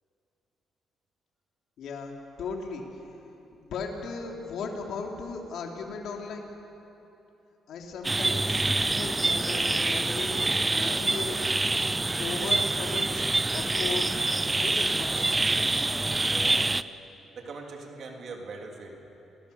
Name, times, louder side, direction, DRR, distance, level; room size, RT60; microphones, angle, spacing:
voice 1, 1.8-2.8 3.6-6.5 7.7-10.4 10.7-11.4 12.2-14.1 14.6-15.5, left 4 dB, 75° left, 1 dB, 3.2 m, -37 dB
sound 1, 8.0-16.8, right 2 dB, 20° right, 0.6 m, -26 dB
voice 2, 16.0-16.7 17.3-19.0, right 3 dB, 55° right, 1 dB, 3.2 m, -41 dB
28.0 x 17.5 x 7.0 m, 3.0 s
cardioid pair, 90°, 0 cm